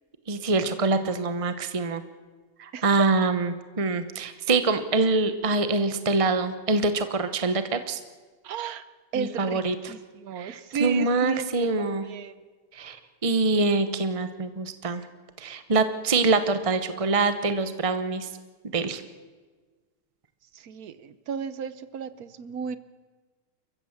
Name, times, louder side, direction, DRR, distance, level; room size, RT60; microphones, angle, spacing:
voice 1, 0.3-2.0 2.6-8.0 9.1-9.9 10.4-12.1 12.7-13.0 13.2-15.0 15.4-18.3 18.7-19.0, right 3 dB, 35° right, 10 dB, 0.5 m, -25 dB
voice 2, 8.4-8.8 9.1-12.3 20.6-22.8, right 7 dB, 55° right, 14 dB, 1.2 m, -34 dB
29.5 x 15.0 x 7.3 m, 1.4 s
omnidirectional pair, 2.3 m